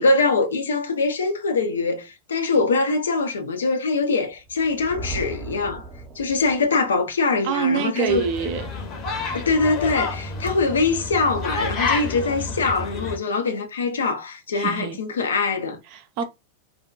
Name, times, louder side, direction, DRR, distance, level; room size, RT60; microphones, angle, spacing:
voice 1, 0.0-5.8 6.2-8.2 9.2-15.8, left 3 dB, 70° left, 0.5 m, -23 dB
Thunder, 4.4-6.9, right 3 dB, 20° right, 0.8 m, -37 dB
voice 2, 7.4-8.7 14.5-15.0 15.9-16.2, right 7 dB, 45° right, 0.5 m, -25 dB
sound 1, 8.1-13.2, left 3 dB, 35° left, 0.8 m, -29 dB
2.5 x 2.2 x 2.3 m
figure-of-eight pair, 90°, 0 cm